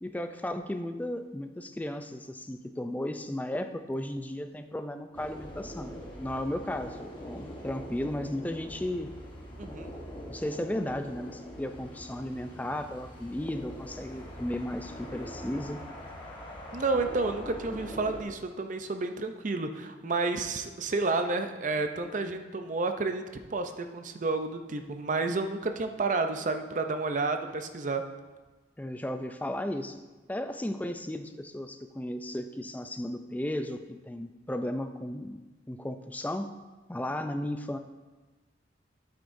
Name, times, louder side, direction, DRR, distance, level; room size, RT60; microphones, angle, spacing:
voice 1, 0.0-9.1 10.3-15.8 28.8-30.0 30.3-35.4 35.7-36.5 36.9-37.8, left 1 dB, 10° left, 7 dB, 0.4 m, -35 dB
sound 1, 5.1-18.2, equal, 25° left, 1.1 m, -43 dB
voice 2, 9.6-9.9 16.7-28.0, right 3 dB, 45° right, 7 dB, 0.5 m, -30 dB
9.4 x 8.2 x 2.6 m, 1.2 s
head